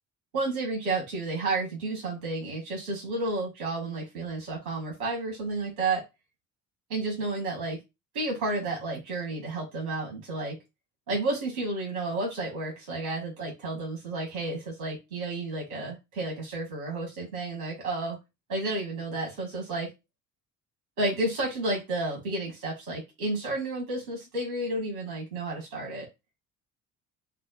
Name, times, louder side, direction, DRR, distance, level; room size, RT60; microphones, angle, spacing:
voice 1, 0.3-6.0 6.9-7.8 8.1-10.6 11.1-18.2 18.5-19.9 21.0-26.1, right 2 dB, 85° right, -1 dB, 1.3 m, -31 dB
4.2 x 2.0 x 3.9 m, 0.24 s
figure-of-eight pair, 50°, 42 cm